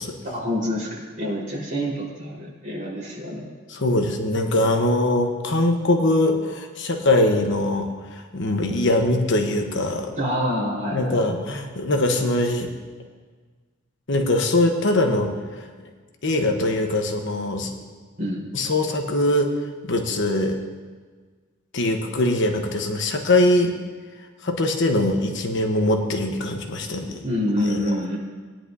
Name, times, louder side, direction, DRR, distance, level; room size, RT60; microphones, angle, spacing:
voice 1, 0.2-3.5 10.2-11.3 18.2-18.5 27.1-28.2, equal, 40° right, -6 dB, 4.3 m, -27 dB
voice 2, 3.7-10.1 10.9-12.7 14.1-15.3 16.2-17.9 18.5-19.5 19.8-20.6 21.7-23.8 24.4-27.2 27.6-27.8, left 1 dB, 65° left, 4 dB, 1.1 m, -22 dB
19.0 x 10.5 x 2.7 m, 1.4 s
head